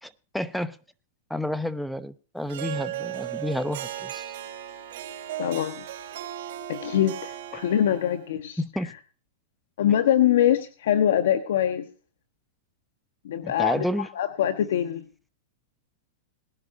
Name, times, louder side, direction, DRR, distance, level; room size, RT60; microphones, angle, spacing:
voice 1, 0.0-0.8 1.3-4.3 8.6-8.9 13.4-14.1, left 1 dB, ahead, 0.9 m, -30 dB
Harp, 2.5-8.3, right 12 dB, 65° right, 4.2 m, -36 dB
voice 2, 5.4-5.8 6.7-8.6 9.8-11.9 13.2-13.8 14.2-15.0, left 10 dB, 75° left, 1.3 m, -23 dB
20.5 x 11.0 x 2.7 m
hypercardioid pair, 130°, 0 cm